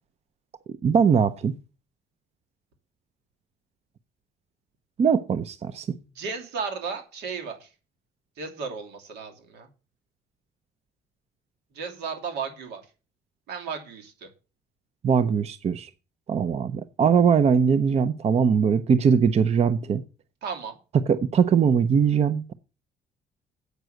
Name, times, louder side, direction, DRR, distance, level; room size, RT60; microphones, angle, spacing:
voice 1, 0.8-1.5 5.0-5.9 15.0-15.9 16.3-20.0 20.9-22.5, right 6 dB, 40° right, 0.6 m, -21 dB
voice 2, 6.1-7.7 8.4-9.7 11.7-12.8 13.5-14.3 20.4-20.8, right 5 dB, 80° right, 2.9 m, -34 dB
8.1 x 6.1 x 7.7 m
cardioid pair, 110°, 17 cm